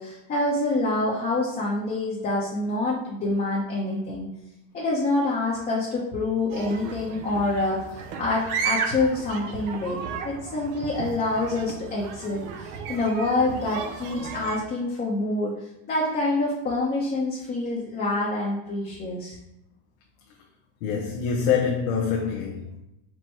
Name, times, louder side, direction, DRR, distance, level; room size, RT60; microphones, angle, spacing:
voice 1, 0.0-4.3 4.7-7.8 8.2-19.4, left 2 dB, 20° left, 0.8 m, -26 dB
sound 1, 6.5-14.6, right 6 dB, 50° right, 0.6 m, -34 dB
voice 2, 20.8-22.8, left 6 dB, 90° left, 0.8 m, -25 dB
4.5 x 2.2 x 4.4 m
supercardioid pair, 135°, 41 cm